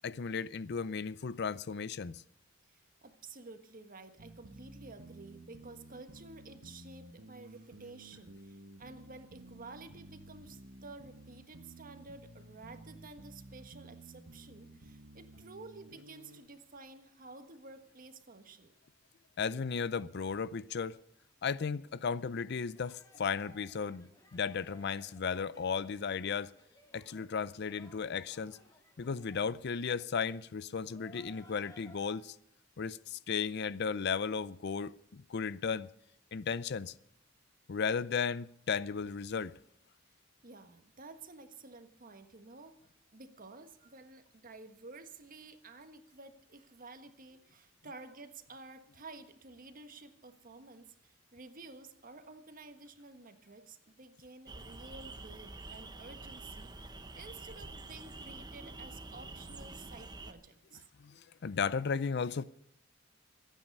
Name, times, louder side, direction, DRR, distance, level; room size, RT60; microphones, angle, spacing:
voice 1, 0.0-2.2 19.4-21.0 21.4-26.5 26.9-28.6 29.0-32.4 32.8-35.9 36.3-36.9 37.7-39.5 61.0-62.4, left 6 dB, 60° left, 0.5 m, -35 dB
voice 2, 2.7-18.7 40.4-42.7 43.1-60.8, right 3 dB, 45° right, 1.5 m, -52 dB
sound 1, 4.2-16.4, right 2 dB, 80° right, 1.3 m, -53 dB
sound 2, 22.7-32.2, left 1 dB, 15° left, 2.1 m, -61 dB
sound 3, 54.5-60.3, right 2 dB, 20° right, 0.9 m, -47 dB
24.5 x 9.2 x 5.4 m
head